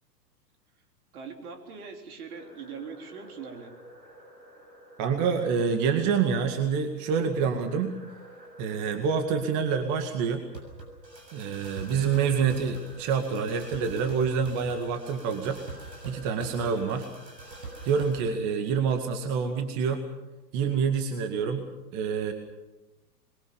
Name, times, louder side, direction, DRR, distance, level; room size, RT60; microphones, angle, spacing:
voice 1, 1.1-3.7, right 5 dB, 60° right, 4 dB, 3.8 m, -41 dB
sound 1, 2.3-18.3, right 2 dB, 85° right, 6.9 m, -46 dB
voice 2, 5.0-8.0 8.6-10.4 11.3-15.6 16.0-17.1 17.8-20.0 20.5-21.6 21.9-22.3, right 6 dB, 35° right, 6 dB, 2.1 m, -27 dB
25.5 x 22.0 x 7.1 m, 1.1 s
hypercardioid pair, 110°, 49 cm